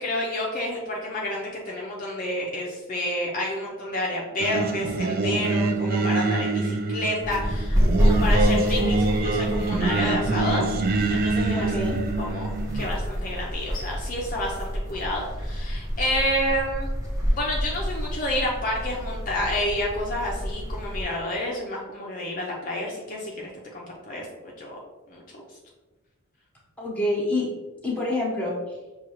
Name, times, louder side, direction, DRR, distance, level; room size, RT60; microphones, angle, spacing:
voice 1, 0.0-11.7 12.2-16.9 17.3-23.3 23.7-24.8 25.1-25.2, left 1 dB, 40° left, -2 dB, 0.5 m, -29 dB
Singing, 4.4-12.9, right 3 dB, 45° right, 0.4 m, -25 dB
sound 1, 7.2-21.0, equal, 15° right, 0.8 m, -28 dB
voice 2, 11.5-12.0 26.8-27.5 27.8-28.8, left 1 dB, 5° left, -4 dB, 1.0 m, -27 dB
6.0 x 2.3 x 3.0 m, 1.2 s
head